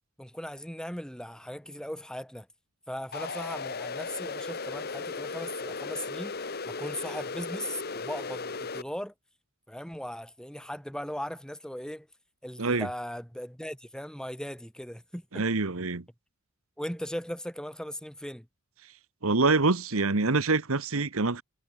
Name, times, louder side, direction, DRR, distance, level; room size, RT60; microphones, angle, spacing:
voice 1, 0.2-2.5 2.9-6.4 6.7-9.1 9.7-12.1 12.4-15.5 16.8-18.5, equal, 5° left, 5.4 m, -38 dB
sound 1, 3.1-8.8, left 4 dB, 45° left, 1.3 m, -36 dB
voice 2, 15.3-16.0 19.2-21.4, right 3 dB, 70° right, 1.3 m, -25 dB
head